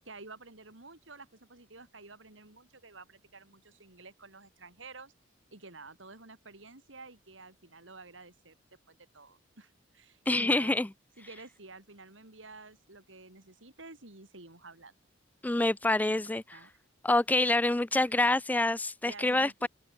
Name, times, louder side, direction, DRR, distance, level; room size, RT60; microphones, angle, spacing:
voice 1, 0.0-5.1 5.5-8.6 8.9-10.8 11.2-15.0 16.1-16.7 17.9-18.0 19.1-19.7, right 3 dB, 75° right, 4.5 m, -51 dB
voice 2, 10.3-10.9 15.4-16.4 17.0-19.7, left 2 dB, 10° left, 0.4 m, -26 dB
head